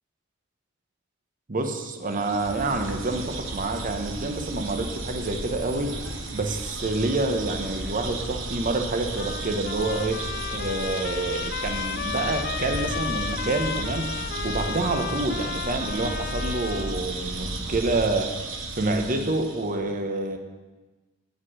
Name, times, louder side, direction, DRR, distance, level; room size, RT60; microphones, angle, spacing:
voice 1, 1.5-6.0 6.3-18.4 18.7-20.4, right 2 dB, 45° right, 5 dB, 0.9 m, -28 dB
sound 1, 2.0-19.8, right 4 dB, 80° right, 1.0 m, -36 dB
sound 2, 2.4-18.1, equal, 60° right, 2.2 m, -37 dB
Trumpet, 9.1-17.0, left 9 dB, 50° left, 0.3 m, -34 dB
8.2 x 5.2 x 7.4 m, 1.2 s
head